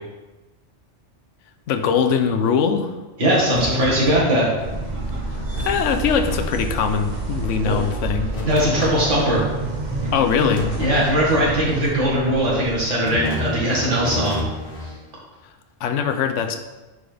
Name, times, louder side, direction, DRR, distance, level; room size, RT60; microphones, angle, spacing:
voice 1, 1.7-2.9 5.6-8.3 10.1-10.7 15.8-16.6, left 6 dB, 85° left, 8 dB, 1.0 m, -21 dB
voice 2, 3.2-4.5 7.6-7.7 8.4-9.4 10.0-10.1 10.8-14.4, right 1 dB, 85° right, -5 dB, 2.1 m, -20 dB
sound 1, 3.5-4.7 5.1-5.2 5.5-6.4 6.6-7.0 8.3-9.5 10.5-11.5 13.0-15.0, left 3 dB, 50° left, 1.0 m, -31 dB
sound 2, 4.6-12.8, right 2 dB, 40° right, 0.9 m, -29 dB
9.4 x 3.8 x 3.3 m, 1.2 s
omnidirectional pair, 1.2 m